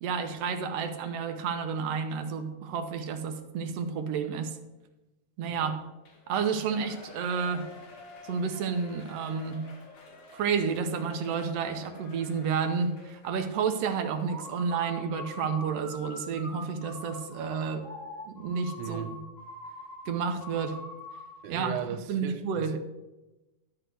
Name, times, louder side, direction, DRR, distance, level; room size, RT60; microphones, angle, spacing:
voice 1, 0.0-4.6 5.4-5.8 6.3-7.7 8.2-9.6 10.3-17.8 18.3-19.2 20.1-20.8 21.5-21.7 22.1-22.7, right 6 dB, 65° right, 6 dB, 1.8 m, -30 dB
Shout / Cheering, 6.0-14.3 14.7-14.8, left 2 dB, 65° left, 2.7 m, -50 dB
sound 1, 14.2-21.4, left 2 dB, 5° right, 1.8 m, -44 dB
voice 2, 18.8-19.2 21.4-22.8, right 8 dB, 85° right, 8 dB, 1.2 m, -37 dB
12.0 x 4.1 x 8.0 m, 1.1 s
omnidirectional pair, 3.4 m